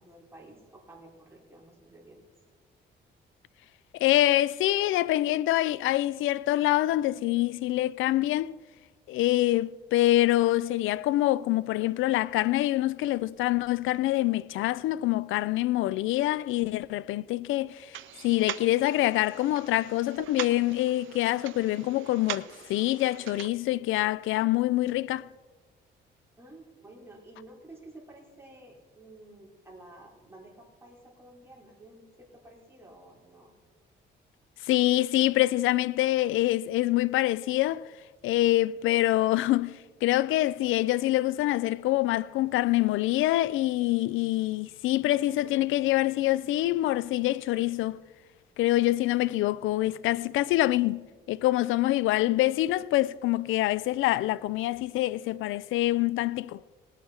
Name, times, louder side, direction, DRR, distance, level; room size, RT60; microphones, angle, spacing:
voice 1, 0.0-2.2 26.4-33.6, right 1 dB, 15° right, 4.3 m, -51 dB
voice 2, 3.9-8.6 9.1-25.3 34.6-37.9 38.2-48.0 48.6-56.6, left 16 dB, 85° left, 0.4 m, -25 dB
sound 1, 17.9-23.5, right 14 dB, 75° right, 0.5 m, -41 dB
19.0 x 8.7 x 4.4 m
cardioid pair, 90°, 20 cm